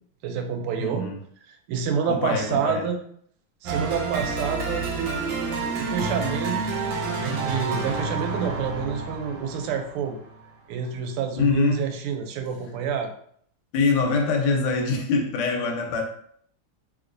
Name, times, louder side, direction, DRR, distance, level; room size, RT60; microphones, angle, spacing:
voice 1, 0.2-1.1 1.5-3.0 3.6-6.6 7.2-10.2 10.7-13.1, right 6 dB, 85° right, 5 dB, 1.5 m, -28 dB
voice 2, 0.8-1.2 2.1-2.9 11.4-11.9 13.7-16.0, left 4 dB, 85° left, 2 dB, 1.5 m, -24 dB
sound 1, 3.6-10.5, right 3 dB, 70° right, 1.3 m, -29 dB
3.2 x 2.9 x 2.5 m, 0.63 s
omnidirectional pair, 2.4 m